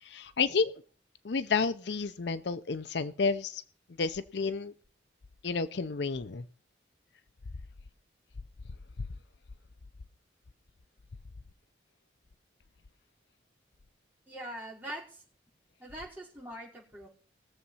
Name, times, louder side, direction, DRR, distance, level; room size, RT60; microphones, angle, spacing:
voice 1, 0.0-0.7 1.2-3.6 4.0-4.7 5.4-6.4, left 4 dB, 65° left, 13 dB, 0.6 m, -30 dB
voice 2, 14.3-15.2 15.8-17.1, right 1 dB, 10° right, -4 dB, 4.9 m, -43 dB
20.0 x 7.2 x 5.6 m, 0.42 s
head